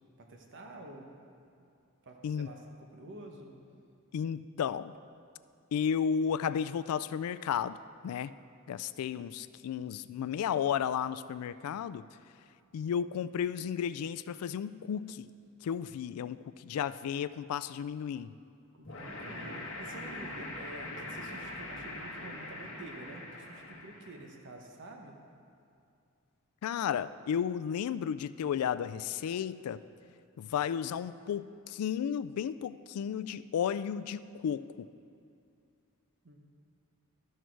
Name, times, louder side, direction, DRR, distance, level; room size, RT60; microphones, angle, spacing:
voice 1, 0.2-1.1 2.0-3.5 16.7-16.8 18.7-25.1 36.2-36.4, right 2 dB, 55° right, 2 dB, 1.0 m, -49 dB
voice 2, 4.1-4.9 5.7-7.8 8.0-8.3 8.7-12.1 12.7-15.3 15.6-18.3 26.6-29.8 30.4-34.9, left 8 dB, 80° left, 15 dB, 0.3 m, -33 dB
sound 1, 18.8-24.3, left 2 dB, 60° left, 1.4 m, -42 dB
12.5 x 6.4 x 4.6 m, 2.5 s
head